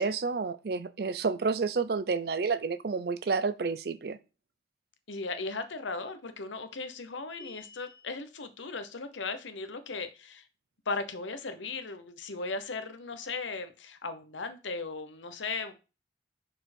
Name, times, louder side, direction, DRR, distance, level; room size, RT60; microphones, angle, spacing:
voice 1, 0.0-4.2, right 4 dB, 55° right, 0.4 m, -30 dB
voice 2, 5.1-10.4 10.9-15.7, left 3 dB, 85° left, 0.9 m, -37 dB
sound 1, 7.3-8.2, left 4 dB, 25° left, 0.9 m, -50 dB
6.4 x 4.5 x 4.3 m
head